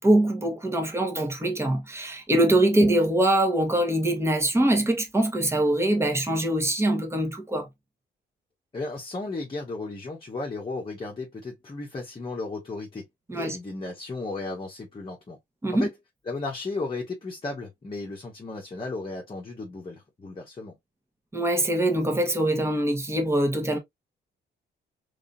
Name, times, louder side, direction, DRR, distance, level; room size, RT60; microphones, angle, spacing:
voice 1, 0.0-7.7 13.3-13.6 15.6-15.9 21.3-23.8, right 1 dB, 15° right, 1.2 m, -23 dB
voice 2, 8.7-13.1 13.3-15.4 15.7-15.9 16.3-20.7, left 3 dB, 25° left, 1.1 m, -34 dB
3.6 x 3.4 x 2.6 m
cardioid pair, 90°, 20 cm